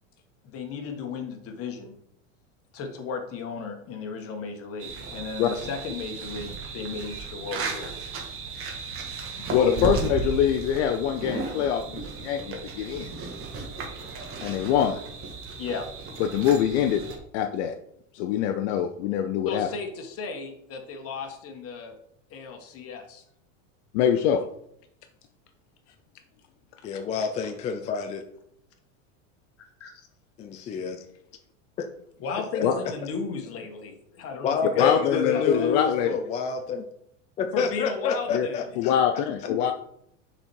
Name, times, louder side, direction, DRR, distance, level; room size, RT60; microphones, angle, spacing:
voice 1, 0.4-1.9 2.7-8.1 9.4-10.0 15.6-15.9 19.4-22.0 22.3-23.2 26.8-26.9 29.8-30.1 32.2-35.7 37.5-38.6, left 5 dB, 35° left, 4 dB, 1.4 m, -35 dB
sound 1, 4.8-17.2, right 4 dB, 35° right, 1.5 m, -35 dB
voice 2, 9.5-13.1 14.4-15.0 16.2-17.0 17.3-17.7 18.1-19.7 23.9-24.4 32.6-32.8 34.8-36.2 38.3-38.5 38.8-39.7, left 9 dB, 60° left, 8 dB, 0.6 m, -24 dB
voice 3, 26.8-28.2 30.4-31.0 31.8-31.9 32.5-32.6 34.4-36.8 37.4-38.9, left 5 dB, 20° left, 6 dB, 0.3 m, -28 dB
6.3 x 4.3 x 4.5 m, 0.73 s
supercardioid pair, 135°, 39 cm